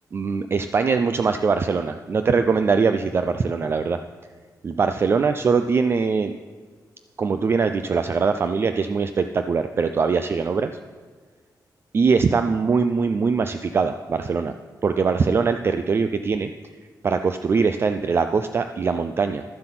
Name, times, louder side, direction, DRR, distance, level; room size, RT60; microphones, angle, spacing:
voice 1, 0.1-4.0 4.6-6.3 7.2-10.7 11.9-14.5 14.8-16.5 17.0-19.4, right 5 dB, 35° right, 8 dB, 0.3 m, -22 dB
11.5 x 7.6 x 5.9 m, 1.6 s
wide cardioid pair, 160°, 7 cm